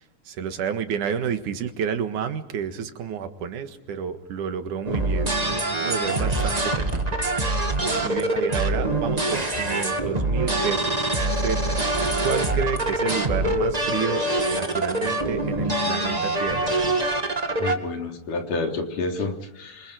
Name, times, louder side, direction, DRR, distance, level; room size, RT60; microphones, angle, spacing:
voice 1, 0.0-7.5 8.0-11.6 12.2-14.2 14.5-16.8, right 7 dB, 75° right, 8 dB, 3.1 m, -30 dB
sound 1, 4.8-17.7, right 2 dB, 15° right, 1.5 m, -24 dB
voice 2, 17.6-19.9, left 3 dB, 85° left, 3 dB, 5.1 m, -29 dB
28.0 x 24.5 x 5.1 m, 0.91 s
omnidirectional pair, 3.6 m